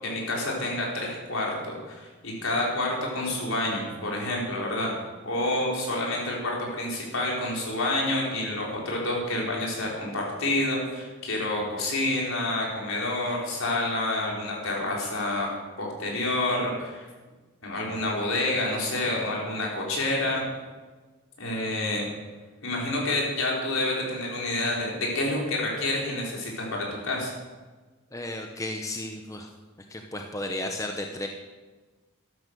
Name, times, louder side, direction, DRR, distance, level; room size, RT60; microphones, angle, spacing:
voice 1, 0.0-4.9 5.2-15.5 15.8-17.1 17.6-20.4 21.4-22.1 22.6-27.3, left 1 dB, 70° left, -3 dB, 5.0 m, -28 dB
voice 2, 28.1-29.5 29.9-31.3, left 1 dB, 15° left, 3 dB, 0.9 m, -33 dB
12.5 x 12.5 x 6.9 m, 1.3 s
head